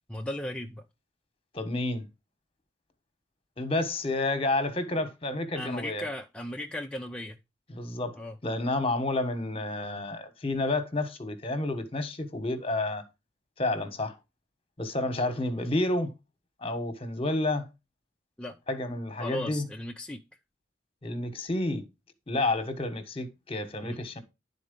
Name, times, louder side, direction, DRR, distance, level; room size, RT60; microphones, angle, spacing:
voice 1, 0.1-0.8 5.5-7.4 8.2-8.4 18.4-18.6 19.2-20.2 23.8-24.0, left 1 dB, 5° left, 0.6 m, -36 dB
voice 2, 1.5-2.1 3.6-6.0 7.7-13.0 13.6-14.1 14.8-16.1 16.6-17.7 18.7-19.7 21.0-21.8 22.3-24.2, left 2 dB, 30° left, 1.2 m, -30 dB
11.0 x 4.2 x 5.2 m
head